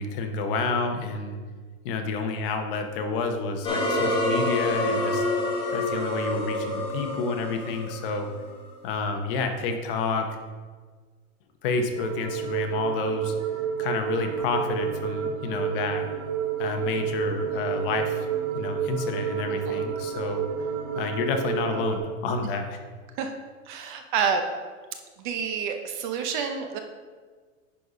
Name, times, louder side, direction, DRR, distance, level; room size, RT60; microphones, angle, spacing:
voice 1, 0.0-1.4 1.8-5.3 5.7-8.3 8.8-10.3 11.6-13.3 13.8-16.1 16.6-18.3 18.5-20.5 20.9-22.8, left 4 dB, 45° left, 5 dB, 1.0 m, -29 dB
sound 1, 3.6-8.6, left 1 dB, 15° left, 1.2 m, -27 dB
sound 2, 12.0-22.0, right 7 dB, 65° right, 1.3 m, -30 dB
voice 2, 19.5-19.8 23.2-23.3 23.7-24.5 25.2-26.8, right 6 dB, 40° right, 5 dB, 0.7 m, -28 dB
10.0 x 4.2 x 4.9 m, 1.5 s
supercardioid pair, 160°, 39 cm